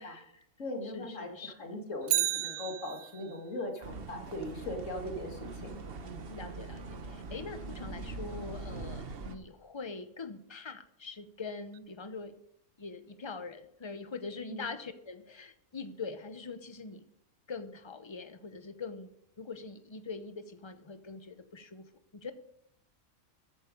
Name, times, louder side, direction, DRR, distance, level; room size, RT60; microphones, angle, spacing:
voice 1, 0.0-0.4 0.8-1.8 6.3-12.3 12.8-17.0 17.5-19.1 19.4-22.3, left 4 dB, 25° left, 10 dB, 0.7 m, -43 dB
voice 2, 0.6-6.3 14.5-14.6, left 1 dB, 65° left, 2 dB, 2.4 m, -40 dB
Bicycle, 2.0-3.4 11.7-11.8, right 12 dB, 80° right, 1.0 m, -32 dB
sound 1, 3.8-9.4, right 3 dB, 50° right, 1.1 m, -42 dB
14.0 x 8.9 x 5.2 m, 0.75 s
omnidirectional pair, 1.4 m